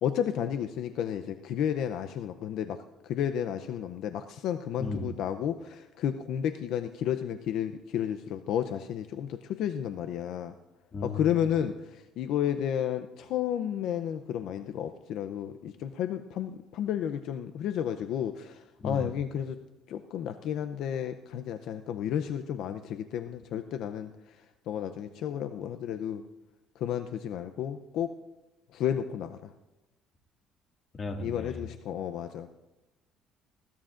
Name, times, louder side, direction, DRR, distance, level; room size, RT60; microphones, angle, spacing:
voice 1, 0.0-10.5 11.0-19.6 19.9-24.4 24.7-26.2 26.8-28.1 28.7-29.5 31.2-32.5, left 9 dB, 65° left, 9 dB, 0.6 m, -32 dB
voice 2, 4.8-5.1 10.9-11.4 18.8-19.1 31.0-31.6, left 3 dB, 30° left, 2 dB, 2.0 m, -35 dB
20.0 x 17.0 x 2.5 m, 1.0 s
cardioid pair, 135°, 0 cm